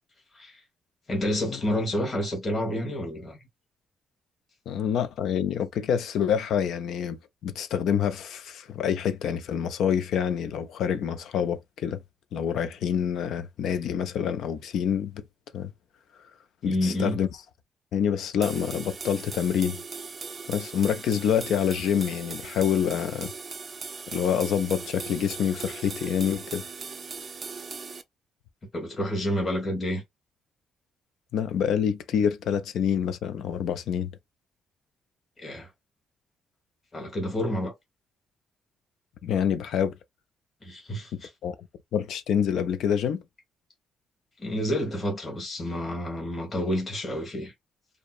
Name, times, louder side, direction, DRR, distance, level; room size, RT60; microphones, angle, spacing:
voice 1, 1.1-3.4 16.6-17.2 28.7-30.0 35.4-35.7 36.9-37.7 40.6-41.3 44.4-47.5, left 1 dB, 35° left, 1.2 m, -29 dB
voice 2, 4.7-12.0 12.3-15.2 15.5-15.7 16.6-17.3 17.9-19.8 20.5-23.3 24.1-26.6 31.3-34.1 39.2-40.0 41.1-41.5 41.9-43.2, left 8 dB, 75° left, 0.3 m, -27 dB
sound 1, 18.4-28.0, right 5 dB, 35° right, 0.4 m, -39 dB
2.7 x 2.0 x 2.3 m
cardioid pair, 90°, 0 cm